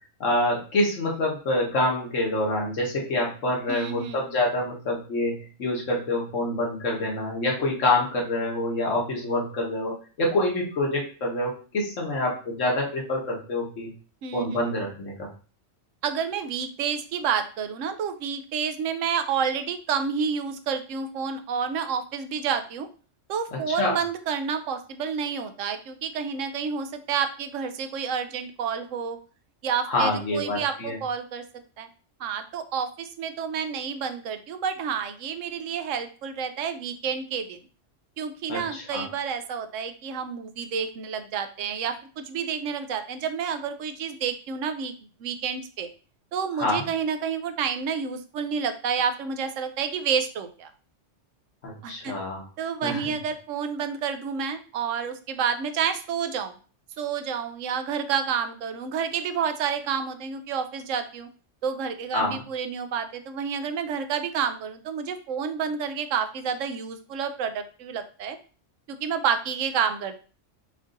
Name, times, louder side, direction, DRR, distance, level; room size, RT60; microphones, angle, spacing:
voice 1, 0.2-13.9 14.3-15.3 23.7-23.9 29.9-31.0 38.5-39.0 46.6-46.9 51.6-52.4 52.8-53.1 62.1-62.4, left 1 dB, 80° left, -1 dB, 1.7 m, -26 dB
voice 2, 3.7-4.4 14.2-14.7 16.0-22.9 23.3-29.2 29.6-31.4 31.8-31.9 32.2-37.6 38.2-44.9 45.2-45.9 46.3-50.7 51.8-52.2 52.6-56.5 57.0-61.3 61.6-68.4 68.9-70.2, right 7 dB, 90° right, 9 dB, 1.0 m, -29 dB
5.3 x 2.6 x 3.9 m, 0.37 s
omnidirectional pair, 1.3 m